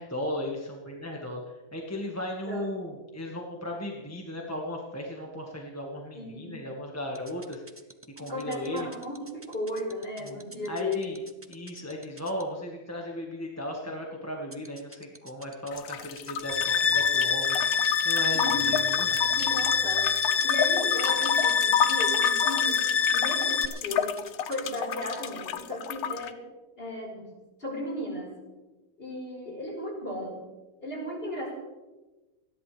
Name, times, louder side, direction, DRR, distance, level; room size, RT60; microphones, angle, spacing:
voice 1, 0.0-7.6 8.2-8.9 10.2-10.4 10.7-11.2 11.5-17.6 18.0-19.2, left 1 dB, 10° left, -1 dB, 1.6 m, -36 dB
voice 2, 6.1-6.6 8.2-11.1 18.3-18.7 19.2-24.2 24.5-26.5 26.8-27.3 27.6-28.4 29.0-30.4 30.8-31.5, left 1 dB, 40° left, -2 dB, 5.1 m, -35 dB
sound 1, 7.1-12.4 14.5-25.4, right 2 dB, 15° right, 0.7 m, -48 dB
sound 2, 15.7-26.3, left 9 dB, 85° left, 1.2 m, -31 dB
sound 3, 16.4-23.7, left 6 dB, 65° left, 0.3 m, -25 dB
29.5 x 11.0 x 3.4 m, 1.1 s
omnidirectional pair, 1.5 m